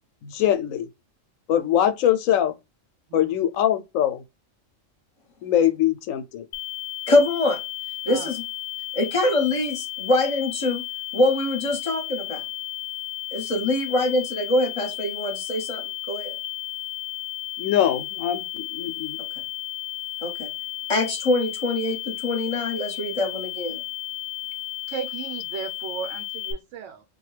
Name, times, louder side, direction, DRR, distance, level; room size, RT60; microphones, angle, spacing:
voice 1, 0.2-0.9 1.5-2.5 3.1-4.2 5.4-6.5 17.6-19.2, left 10 dB, 85° left, 1.0 m, -22 dB
sound 1, 6.5-26.5, left 16 dB, 65° left, 0.8 m, -34 dB
voice 2, 7.1-7.6 8.1-8.4 8.9-10.8 11.1-12.4 13.3-16.3 20.2-20.5 20.9-23.8, left 2 dB, 30° left, 0.8 m, -24 dB
voice 3, 24.9-27.0, right 7 dB, 75° right, 0.9 m, -35 dB
3.9 x 2.2 x 3.1 m
omnidirectional pair, 1.3 m